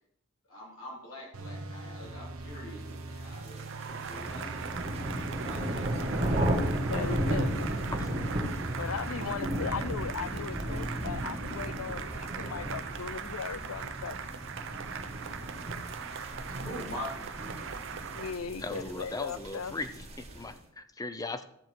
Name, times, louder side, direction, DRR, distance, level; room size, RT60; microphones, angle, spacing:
voice 1, 0.5-3.7 4.0-5.9 8.2-8.3 11.3-11.5 13.9-14.3 14.6-14.9 16.5-17.1 20.3-20.5, left 1 dB, 70° left, 4.3 m, -45 dB
sound 1, 1.3-9.3, right 2 dB, 85° right, 1.0 m, -42 dB
sound 2, 3.0-20.5, right 1 dB, 30° right, 2.0 m, -35 dB
Cheering / Applause, 3.6-18.4, right 7 dB, 60° right, 0.8 m, -41 dB
voice 2, 6.9-7.7 8.8-14.2 18.1-19.8, left 6 dB, 85° left, 0.5 m, -38 dB
voice 3, 18.6-19.9 20.2-21.4, left 2 dB, 15° left, 0.5 m, -38 dB
13.5 x 7.4 x 4.6 m
head